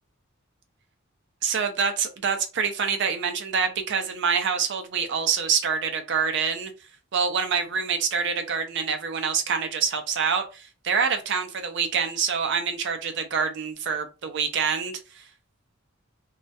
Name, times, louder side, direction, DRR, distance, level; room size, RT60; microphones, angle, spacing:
voice 1, 1.4-6.7 7.1-15.3, right 6 dB, 60° right, 6 dB, 0.5 m, -26 dB
2.3 x 2.1 x 2.7 m, 0.32 s
head